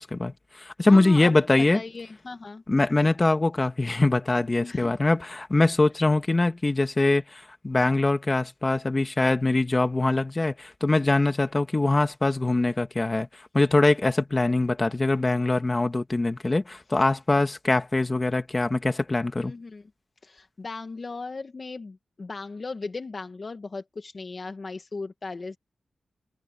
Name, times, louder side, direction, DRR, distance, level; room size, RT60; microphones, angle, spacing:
voice 1, 0.0-1.8 2.7-13.3 13.5-19.5, left 2 dB, 25° left, 2.1 m, -23 dB
voice 2, 0.8-1.3 1.7-2.6 4.6-5.0 19.4-19.8 20.2-25.6, left 3 dB, 45° left, 1.4 m, -37 dB
wide cardioid pair, 90°, 0 cm